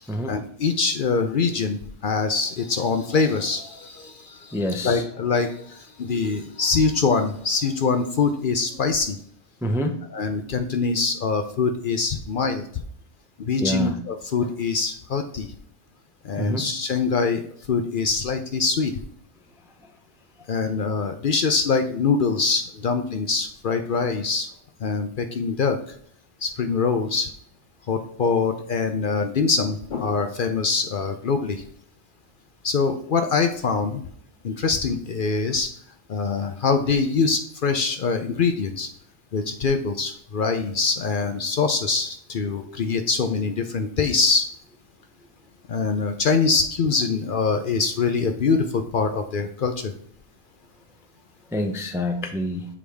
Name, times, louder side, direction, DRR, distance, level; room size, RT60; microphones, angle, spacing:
voice 1, 0.3-9.2 10.1-12.6 13.4-15.5 16.2-18.9 20.5-24.5 24.8-25.8 26.4-27.3 27.9-31.6 32.6-34.0 34.4-35.7 36.1-38.9 39.3-44.5 45.7-49.9, left 4 dB, 55° left, 7 dB, 0.7 m, -24 dB
voice 2, 4.5-5.0 9.6-9.9 13.6-13.9 16.4-16.7 51.5-52.7, equal, 5° right, 5 dB, 0.4 m, -26 dB
7.3 x 4.8 x 3.4 m, 0.62 s
omnidirectional pair, 1.2 m